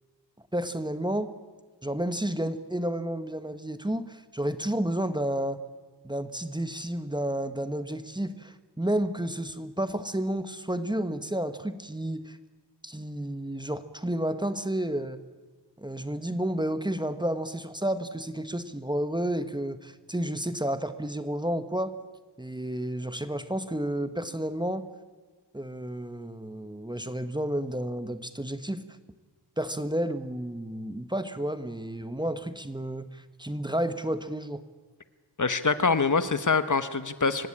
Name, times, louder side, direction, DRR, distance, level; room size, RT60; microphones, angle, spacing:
voice 1, 0.5-1.3 1.8-5.6 6.0-12.4 12.8-15.2 15.8-21.9 22.4-24.9 25.5-28.8 29.6-34.6, right 1 dB, 10° right, 11 dB, 1.1 m, -31 dB
voice 2, 35.4-37.5, left 4 dB, 45° left, 12 dB, 1.2 m, -24 dB
25.0 x 16.5 x 9.8 m, 1.4 s
wide cardioid pair, 105°, 42 cm